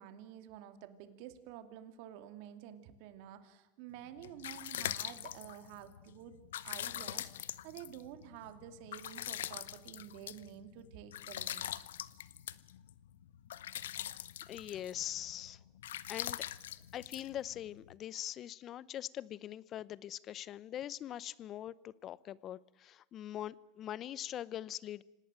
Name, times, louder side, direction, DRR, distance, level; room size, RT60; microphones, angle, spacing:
voice 1, 0.0-11.8, right 11 dB, 65° right, 9 dB, 2.7 m, -50 dB
sound 1, 4.0-17.9, left 12 dB, 90° left, 0.9 m, -43 dB
voice 2, 14.5-15.6 16.1-16.5 16.9-25.0, left 11 dB, 40° left, 21 dB, 0.8 m, -42 dB
26.5 x 18.5 x 9.0 m, 0.96 s
supercardioid pair, 120°, 0 cm